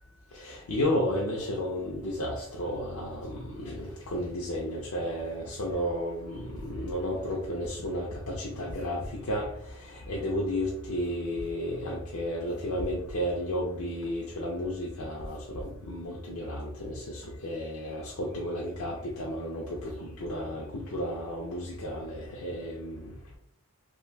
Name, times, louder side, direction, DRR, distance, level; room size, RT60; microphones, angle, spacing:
voice 1, 0.4-9.5 10.1-22.9, equal, 75° left, -3 dB, 0.5 m, -32 dB
2.5 x 2.2 x 3.2 m, 0.73 s
head